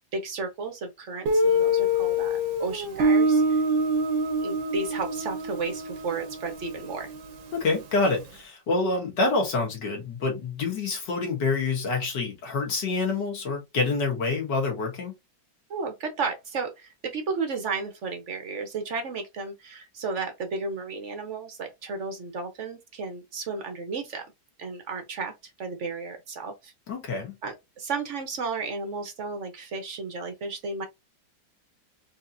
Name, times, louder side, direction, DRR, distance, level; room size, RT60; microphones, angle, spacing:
voice 1, 0.1-3.6 4.4-7.1 15.7-24.3 24.6-25.3 25.6-26.7 27.4-30.9, right 4 dB, 55° right, 0.8 m, -33 dB
Guitar, 1.3-7.9, equal, 90° right, 1.6 m, -25 dB
voice 2, 7.5-15.2 26.9-27.4, left 3 dB, 65° left, 2.0 m, -27 dB
4.6 x 2.9 x 2.5 m
omnidirectional pair, 2.1 m